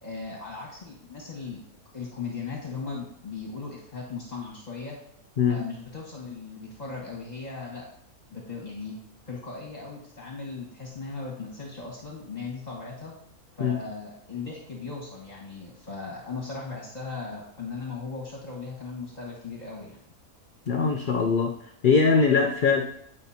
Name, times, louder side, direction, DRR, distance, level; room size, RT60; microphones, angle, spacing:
voice 1, 0.0-1.6 1.9-5.0 5.5-7.8 8.3-9.0 9.3-13.1 13.5-20.0, left 4 dB, 30° left, -3 dB, 1.5 m, -37 dB
voice 2, 20.7-21.5 21.8-22.8, left 5 dB, 60° left, 4 dB, 0.5 m, -21 dB
9.3 x 5.4 x 2.8 m, 0.72 s
omnidirectional pair, 1.6 m